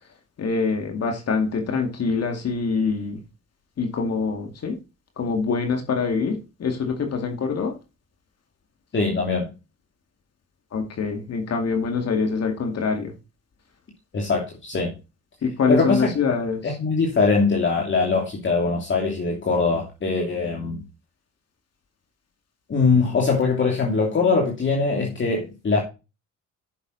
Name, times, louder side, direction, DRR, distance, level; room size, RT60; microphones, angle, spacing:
voice 1, 0.4-3.2 3.8-4.8 5.2-7.7 10.7-13.1 15.4-16.8, left 5 dB, 55° left, 2.4 m, -25 dB
voice 2, 8.9-9.5 14.1-14.9 15.7-16.1 16.6-20.8 22.7-25.8, left 4 dB, 40° left, 2.8 m, -22 dB
9.8 x 6.8 x 4.1 m
cardioid pair, 90°, 30 cm